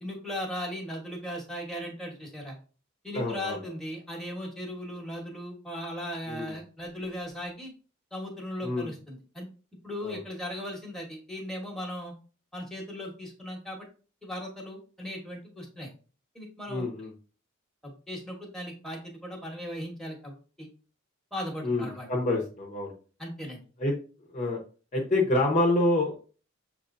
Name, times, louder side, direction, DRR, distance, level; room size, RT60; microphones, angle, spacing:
voice 1, 0.0-2.6 3.0-7.7 8.1-9.5 9.8-12.1 12.5-13.9 14.2-15.9 16.3-16.9 17.8-20.7 21.3-22.1 23.2-23.6, equal, ahead, -1 dB, 1.2 m, -37 dB
voice 2, 3.1-3.6 6.3-6.5 8.6-8.9 10.0-10.2 16.7-17.1 21.6-22.9 23.8-23.9 24.3-24.6 24.9-26.2, left 2 dB, 35° left, 0 dB, 0.9 m, -27 dB
6.6 x 3.1 x 2.6 m, 0.37 s
head